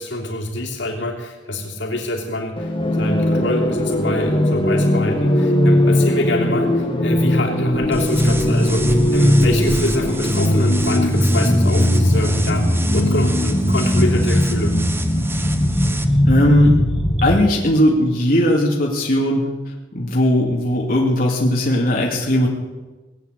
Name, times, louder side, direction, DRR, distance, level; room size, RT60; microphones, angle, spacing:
voice 1, 0.0-2.7 3.0-14.7, left 1 dB, 85° left, -1 dB, 3.2 m, -25 dB
sound 1, 2.6-17.5, left 1 dB, 30° left, 1.7 m, -18 dB
sound 2, 7.7-15.3 15.5-17.8 18.2-18.3 18.7-18.9, right 1 dB, 35° right, 1.2 m, -36 dB
sound 3, 7.9-16.0, right 3 dB, 15° right, 1.0 m, -33 dB
voice 2, 16.3-16.7 17.2-19.5 19.9-22.5, left 1 dB, 50° left, -2 dB, 2.3 m, -17 dB
19.5 x 8.7 x 8.0 m, 1.2 s
head